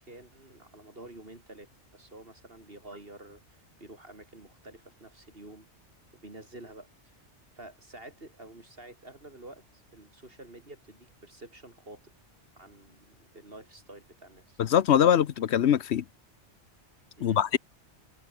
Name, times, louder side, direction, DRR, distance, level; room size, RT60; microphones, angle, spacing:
voice 1, 0.0-5.7 6.2-7.2 7.6-12.1 12.6-14.6 17.2-17.4, right 2 dB, 55° right, 5.1 m, -49 dB
voice 2, 14.6-16.0 17.2-17.6, left 9 dB, 70° left, 1.0 m, -22 dB
omnidirectional pair, 1.2 m